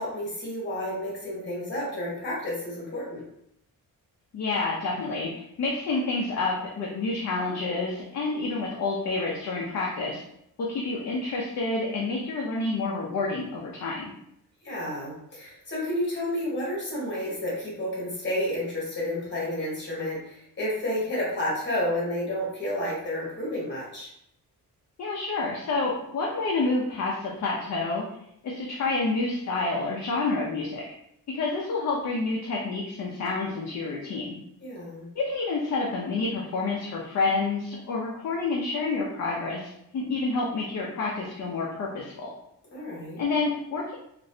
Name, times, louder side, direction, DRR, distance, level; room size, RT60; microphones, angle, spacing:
voice 1, 0.0-3.2 14.6-24.1 34.6-35.1 42.7-43.2, left 1 dB, 30° left, -6 dB, 1.4 m, -31 dB
voice 2, 4.3-10.2 10.6-14.1 25.0-28.0 28.4-30.8 31.3-34.4 35.1-42.3 43.2-44.0, left 3 dB, 50° left, -3 dB, 0.5 m, -28 dB
3.0 x 2.5 x 2.7 m, 0.77 s
wide cardioid pair, 165°, 36 cm